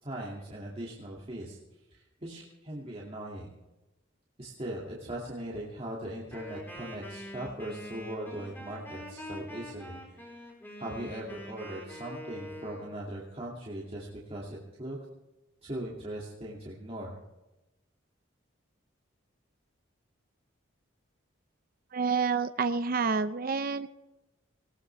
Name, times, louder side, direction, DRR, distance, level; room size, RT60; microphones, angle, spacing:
voice 1, 0.0-1.6 1.9-3.5 4.4-10.3 10.8-15.0 15.6-17.2, right 1 dB, 30° right, -4 dB, 2.4 m, -39 dB
Wind instrument woodwind instrument, 6.3-13.0, left 1 dB, 10° left, 4.2 m, -44 dB
voice 2, 21.9-23.9, right 5 dB, 45° right, 11 dB, 0.5 m, -28 dB
19.0 x 18.0 x 3.4 m, 0.99 s
head